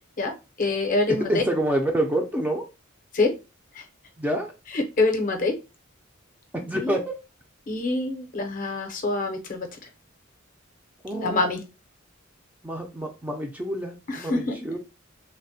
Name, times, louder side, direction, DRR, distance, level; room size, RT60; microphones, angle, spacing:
voice 1, 0.6-1.4 3.1-3.3 3.8-3.9 4.7-5.6 6.7-6.9 7.7-9.7 11.2-11.6 14.1-14.6, left 3 dB, 40° left, 4 dB, 0.5 m, -25 dB
voice 2, 1.1-2.7 4.2-4.5 6.5-7.1 11.0-11.4 12.6-14.8, right 1 dB, 10° right, 2 dB, 0.3 m, -27 dB
3.2 x 2.1 x 2.6 m, 0.28 s
head